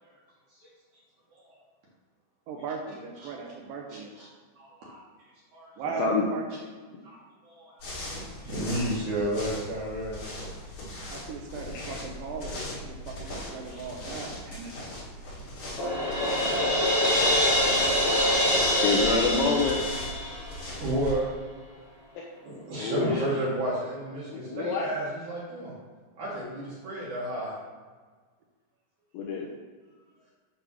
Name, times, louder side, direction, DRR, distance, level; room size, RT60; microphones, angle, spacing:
voice 1, 2.5-4.1 5.8-6.4 11.1-12.9 13.2-14.7, right 5 dB, 80° right, 1 dB, 2.0 m, -37 dB
voice 2, 3.9-4.3 4.6-5.0 5.5-5.7 7.0-7.2 7.5-7.9 8.4-10.2 12.4-12.6 13.7-14.2 20.3-21.2 22.4-25.7 26.2-27.5, right 1 dB, 60° right, -6 dB, 2.3 m, -32 dB
voice 3, 5.8-6.3 11.7-12.0 18.8-19.8 22.8-23.3 24.3-24.9 29.1-29.5, left 4 dB, 80° left, -3 dB, 2.3 m, -27 dB
sound 1, 7.8-21.1, left 1 dB, 55° left, 3.3 m, -39 dB
Crash cymbal, 15.8-20.7, left 1 dB, 35° left, 2.2 m, -25 dB
7.2 x 3.4 x 6.0 m, 1.5 s
omnidirectional pair, 4.6 m